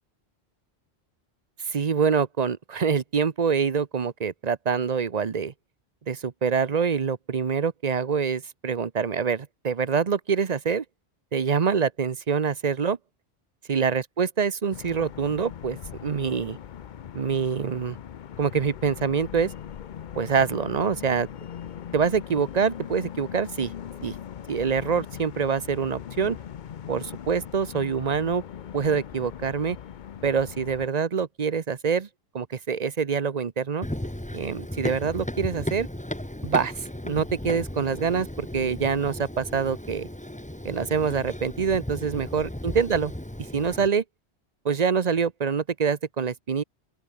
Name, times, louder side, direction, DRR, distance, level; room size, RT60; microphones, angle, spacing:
voice 1, 1.7-5.5 6.1-10.8 11.3-13.0 13.7-16.6 17.1-18.0 18.4-19.5 20.1-21.3 21.9-23.7 24.0-24.1 24.5-26.4 26.9-28.4 28.7-29.8 30.2-32.1 32.3-33.9 34.3-35.9 36.4-36.7 37.0-40.1 40.6-43.1 43.5-44.0 44.6-46.6, right 6 dB, 40° right, 0.9 m, -25 dB
sound 1, 14.7-30.9, left 9 dB, 50° left, 0.7 m, -40 dB
Run, 33.8-43.9, left 1 dB, 5° left, 1.6 m, -35 dB
open air
omnidirectional pair, 1.1 m